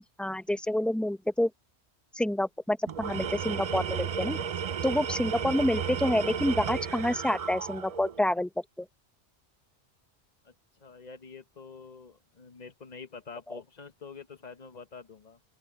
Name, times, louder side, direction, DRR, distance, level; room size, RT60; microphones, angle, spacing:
voice 1, 0.2-1.5 2.1-4.4 4.8-8.5 8.8-8.9 13.5-13.6, left 1 dB, ahead, 0.6 m, -28 dB
Tools, 2.9-8.2, right 7 dB, 50° right, 0.4 m, -33 dB
voice 2, 10.8-15.4, left 5 dB, 40° left, 1.2 m, -47 dB
open air
omnidirectional pair, 1.2 m